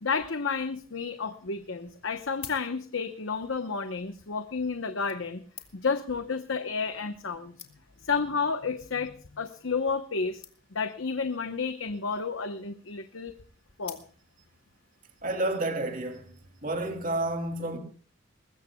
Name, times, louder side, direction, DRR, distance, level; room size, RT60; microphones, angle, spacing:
voice 1, 0.0-5.4 5.7-7.5 8.0-10.4 10.7-13.3 13.8-14.0, left 5 dB, 70° left, 0.9 m, -31 dB
sound 1, 2.3-3.2 4.1-4.3 5.1-6.1 6.9-7.0 7.2-7.3 7.6-8.1 8.8-9.0 9.3-9.4 9.6-9.7 9.9-10.1 10.4-10.9 11.9-12.4 13.8-14.5 15.1-15.2, left 8 dB, 30° left, 1.9 m, -48 dB
voice 2, 15.2-16.3 16.6-17.8, right 2 dB, 40° right, 2.7 m, -30 dB
22.0 x 21.0 x 2.3 m
head